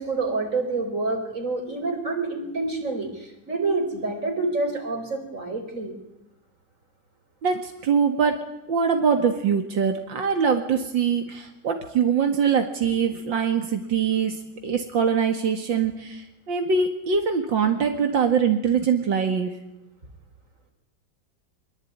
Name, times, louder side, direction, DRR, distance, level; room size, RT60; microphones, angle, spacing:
voice 1, 0.0-5.9, right 3 dB, 40° right, 4 dB, 5.1 m, -27 dB
voice 2, 7.4-8.4 8.7-19.5, right 6 dB, 85° right, 5 dB, 2.7 m, -23 dB
24.0 x 23.0 x 9.5 m, 0.88 s
omnidirectional pair, 2.0 m